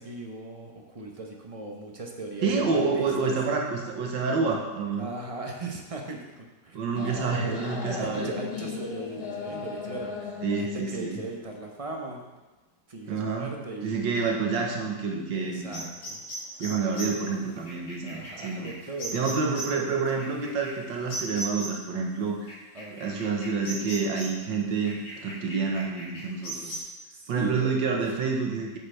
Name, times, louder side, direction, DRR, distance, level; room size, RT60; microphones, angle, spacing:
voice 1, 0.0-3.3 5.0-6.8 7.1-12.2 12.9-14.4 15.3-16.2 18.0-20.0 22.7-23.1 26.5-27.7, right 2 dB, 35° right, 1 dB, 0.6 m, -38 dB
voice 2, 2.4-5.1 6.7-8.3 10.4-11.2 13.1-13.5 13.8-15.8 16.6-18.7 19.1-22.6 22.9-26.8 27.3-28.8, right 4 dB, 85° right, 0 dB, 1.9 m, -28 dB
sound 1, 7.0-12.1, left 5 dB, 60° left, 1.7 m, -36 dB
sound 2, 15.7-21.9 22.5-24.5 24.8-26.8, right 1 dB, 75° left, 4.1 m, -38 dB
8.8 x 7.4 x 3.3 m, 1.2 s
omnidirectional pair, 2.0 m